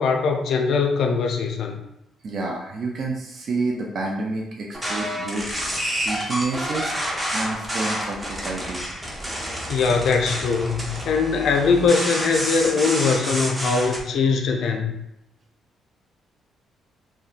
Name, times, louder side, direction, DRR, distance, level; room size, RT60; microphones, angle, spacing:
voice 1, 0.0-1.8 9.7-14.9, left 5 dB, 70° left, 3 dB, 0.4 m, -21 dB
voice 2, 2.2-6.9 7.3-8.8, right 3 dB, 55° right, -1 dB, 0.4 m, -29 dB
sound 1, 4.7-14.0, equal, 15° right, 0.7 m, -29 dB
2.7 x 2.1 x 2.4 m, 0.82 s
cardioid pair, 90°, 0 cm